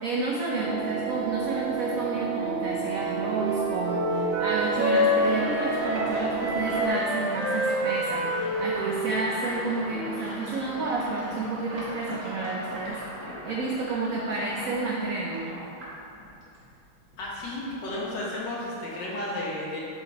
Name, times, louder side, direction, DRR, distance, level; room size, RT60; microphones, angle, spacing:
voice 1, 0.0-13.0 13.4-15.5, right 3 dB, 80° right, -2 dB, 0.7 m, -30 dB
sound 1, 0.5-6.9, right 7 dB, ahead, 1.3 m, -31 dB
Wind instrument woodwind instrument, 2.4-10.4, left 1 dB, 55° right, 2.5 m, -28 dB
Sink (filling or washing), 4.4-16.7 17.0-18.4, equal, 40° right, 2.1 m, -39 dB
voice 2, 17.2-19.8, left 1 dB, 60° left, -5 dB, 1.9 m, -33 dB
7.4 x 5.2 x 4.1 m, 2.6 s
omnidirectional pair, 2.3 m